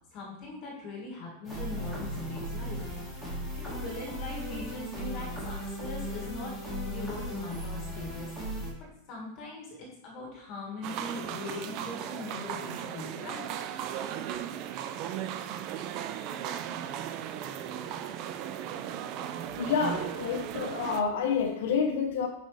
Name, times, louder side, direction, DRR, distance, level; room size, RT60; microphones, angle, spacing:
voice 1, 0.1-3.2 3.6-8.6 9.1-13.4, left 3 dB, 35° left, -2 dB, 2.1 m, -41 dB
sound 1, 1.4-8.7, equal, ahead, 2.5 m, -37 dB
sound 2, 10.8-21.0, right 10 dB, 35° right, 0.4 m, -36 dB
voice 2, 19.6-22.3, left 6 dB, 70° left, 2 dB, 0.8 m, -28 dB
8.7 x 5.2 x 3.4 m, 0.80 s
supercardioid pair, 165°, 0 cm